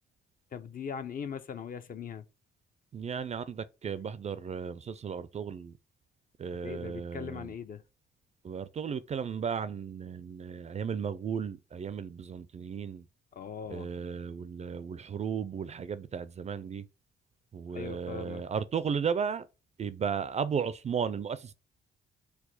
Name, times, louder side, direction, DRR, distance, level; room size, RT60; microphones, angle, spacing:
voice 1, 0.5-2.2 6.6-7.8 13.3-13.9 17.7-18.4, left 7 dB, 45° left, 0.6 m, -40 dB
voice 2, 2.9-5.7 6.4-7.5 8.4-13.1 13.7-16.9 17.5-19.5 19.8-21.5, right 6 dB, 35° right, 0.4 m, -35 dB
4.6 x 2.2 x 4.0 m
cardioid pair, 90°, 20 cm